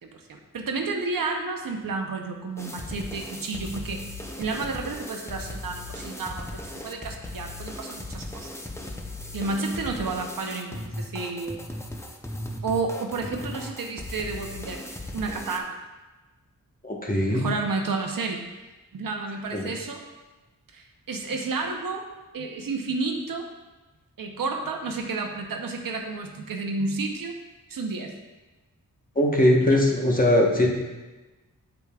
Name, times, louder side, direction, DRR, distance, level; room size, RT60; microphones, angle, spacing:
voice 1, 0.0-4.0 4.4-8.5 9.3-11.7 12.6-14.8 15.1-15.8 17.3-18.4 18.9-20.0 20.7-22.1 22.3-23.5 24.2-27.4 27.7-28.1, right 3 dB, 75° right, 3 dB, 0.8 m, -31 dB
sound 1, 2.6-15.6, left 1 dB, 10° left, 0.6 m, -37 dB
voice 2, 16.8-17.4 19.5-19.7 29.1-30.7, left 1 dB, 25° left, -1 dB, 1.2 m, -20 dB
8.1 x 7.1 x 2.4 m, 1.1 s
wide cardioid pair, 105°, 34 cm